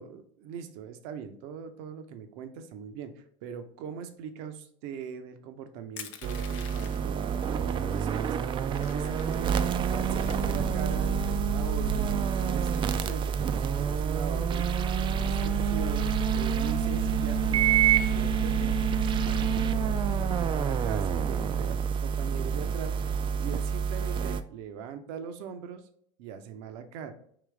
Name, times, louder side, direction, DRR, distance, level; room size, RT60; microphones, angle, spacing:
voice 1, 0.0-16.1 16.3-17.7 18.0-18.7 19.3-23.0 23.4-25.9 26.2-27.1, right 7 dB, 60° right, 8 dB, 0.7 m, -41 dB
Crushing, 6.0-7.2 7.9-8.0 8.3-9.6 10.0-11.1, left 9 dB, 70° left, 0.5 m, -46 dB
sound 1, 6.2-24.4, right 7 dB, 30° right, 0.3 m, -27 dB
5.0 x 3.0 x 3.3 m, 0.65 s
hypercardioid pair, 80°, 17 cm